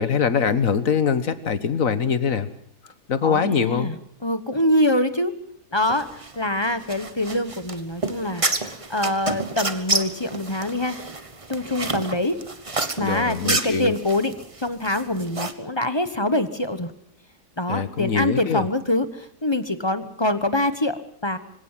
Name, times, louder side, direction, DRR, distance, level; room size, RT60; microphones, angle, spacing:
voice 1, 0.0-2.5 3.1-4.0 13.0-13.9 17.7-18.6, left 6 dB, 60° left, 12 dB, 1.7 m, -23 dB
voice 2, 3.2-5.3 5.7-11.0 11.5-12.4 13.0-16.9 17.6-21.4, left 1 dB, 20° left, 11 dB, 1.1 m, -25 dB
sound 1, 5.8-15.5, right 3 dB, 20° right, 1.2 m, -29 dB
25.5 x 17.0 x 7.4 m, 0.64 s
omnidirectional pair, 1.7 m